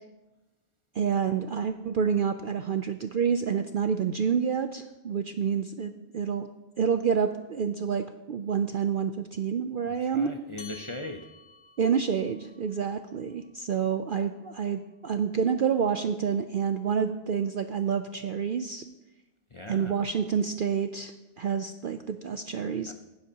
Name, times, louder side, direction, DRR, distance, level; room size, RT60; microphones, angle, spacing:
voice 1, 0.9-6.5 6.8-10.3 11.8-18.8 19.7-22.9, right 7 dB, 60° right, 8 dB, 0.5 m, -28 dB
voice 2, 9.9-11.3 19.5-20.0 22.9-23.0, left 2 dB, 35° left, 3 dB, 0.5 m, -39 dB
sound 1, 10.6-15.4, left 5 dB, 55° left, 1.3 m, -53 dB
16.0 x 11.0 x 2.9 m, 1.1 s
omnidirectional pair, 1.3 m